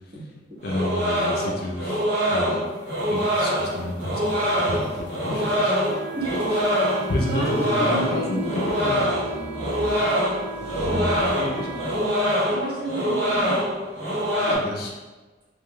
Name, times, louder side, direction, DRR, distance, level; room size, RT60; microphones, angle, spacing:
voice 1, 0.6-2.7 3.1-5.7 7.1-9.1 11.3-11.7 14.5-14.9, left 1 dB, 55° left, -1 dB, 0.5 m, -30 dB
sound 1, 0.6-14.6, equal, 70° right, 0.8 m, -24 dB
sound 2, 3.0-12.3, equal, 25° left, 1.2 m, -36 dB
Wind instrument woodwind instrument, 5.8-12.0, right 7 dB, 85° right, 0.4 m, -38 dB
voice 2, 7.3-8.5 11.5-11.8 12.5-13.5, right 1 dB, 30° right, -9 dB, 1.2 m, -31 dB
3.4 x 2.5 x 2.2 m, 1.2 s
head